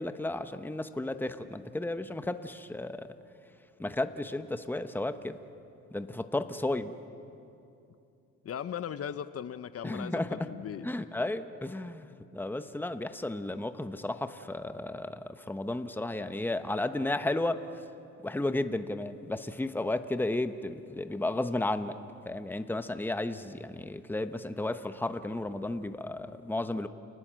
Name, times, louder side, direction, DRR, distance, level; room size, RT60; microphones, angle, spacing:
voice 1, 0.0-3.1 3.8-5.4 5.9-6.9 9.8-10.5 10.8-17.6 18.2-22.0 22.3-26.9, left 2 dB, 5° left, 9 dB, 1.0 m, -33 dB
voice 2, 8.4-10.9, left 9 dB, 50° left, 12 dB, 0.8 m, -38 dB
29.5 x 19.5 x 7.6 m, 2.7 s
cardioid pair, 90°, 30 cm